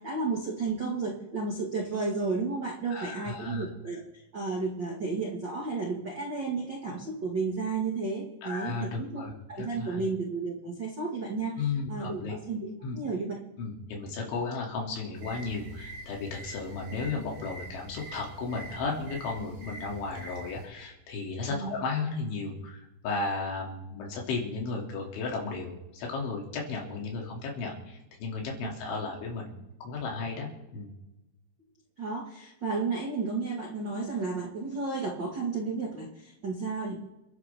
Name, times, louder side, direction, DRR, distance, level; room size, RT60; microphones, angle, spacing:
voice 1, 0.0-4.0 4.3-9.2 9.5-11.6 11.9-13.3 21.5-21.7 32.0-37.0, right 4 dB, 90° right, -2 dB, 1.0 m, -32 dB
voice 2, 2.9-3.7 8.4-9.3 9.6-10.1 11.6-12.3 12.8-13.0 13.6-29.5 29.8-30.9, left 4 dB, 70° left, -1 dB, 5.2 m, -34 dB
sound 1, 15.1-20.7, right 1 dB, 70° right, 8.3 m, -45 dB
29.5 x 10.5 x 3.7 m, 0.99 s
omnidirectional pair, 5.6 m